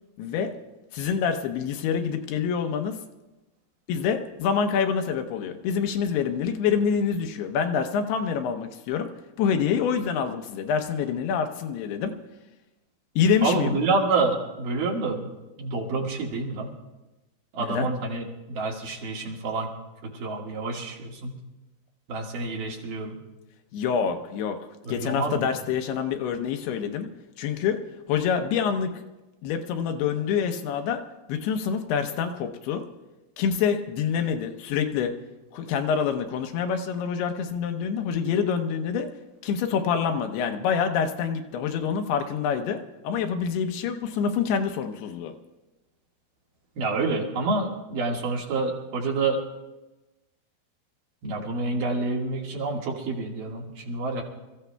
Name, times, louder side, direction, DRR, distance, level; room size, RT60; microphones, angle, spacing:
voice 1, 0.2-0.5 0.9-3.0 3.9-9.1 9.4-12.1 13.2-13.8 17.6-17.9 23.7-24.6 24.9-27.1 27.4-27.8 28.1-29.1 29.4-31.0 31.3-32.8 33.4-35.1 35.5-39.1 39.4-45.3, left 7 dB, 80° left, 6 dB, 2.9 m, -26 dB
voice 2, 13.4-15.3 15.6-16.7 17.5-19.7 20.0-21.4 22.1-23.2 24.8-25.5 46.8-49.4 51.2-54.2, right 3 dB, 60° right, -2 dB, 3.2 m, -28 dB
28.0 x 15.0 x 2.3 m, 1.1 s
omnidirectional pair, 4.6 m